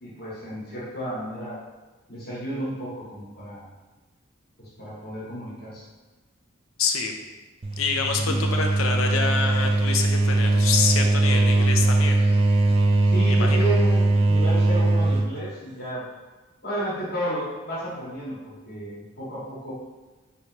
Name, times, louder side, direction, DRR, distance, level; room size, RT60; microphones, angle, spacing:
voice 1, 0.0-1.6 2.1-3.7 4.6-5.8 8.2-8.4 13.0-16.0 16.6-19.7, right 1 dB, 45° left, -7 dB, 1.3 m, -32 dB
voice 2, 6.8-7.1 7.8-12.2 13.3-13.7, left 5 dB, 75° left, 4 dB, 0.5 m, -27 dB
sound 1, 7.6-15.4, right 2 dB, 25° right, 0.3 m, -20 dB
3.2 x 2.9 x 4.4 m, 1.2 s
head